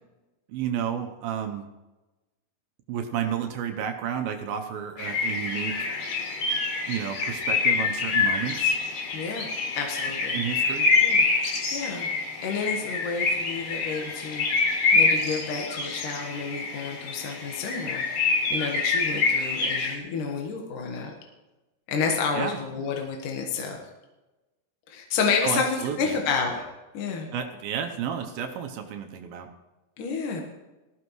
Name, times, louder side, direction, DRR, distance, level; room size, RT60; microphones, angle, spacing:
voice 1, 0.5-1.7 2.9-5.9 6.9-8.8 10.3-10.9 22.3-22.6 25.4-26.2 27.3-29.5, right 8 dB, 75° right, 5 dB, 2.6 m, -31 dB
sound 1, 5.0-20.0, left 4 dB, 90° left, 4.6 m, -26 dB
voice 2, 9.1-9.5 9.8-10.4 10.8-11.3 11.7-12.1 12.4-18.0 18.5-21.1 21.9-23.8 24.9-26.7 26.9-27.3 30.0-30.4, left 5 dB, 65° left, 1 dB, 2.8 m, -30 dB
19.5 x 14.5 x 3.2 m, 1.1 s
omnidirectional pair, 4.4 m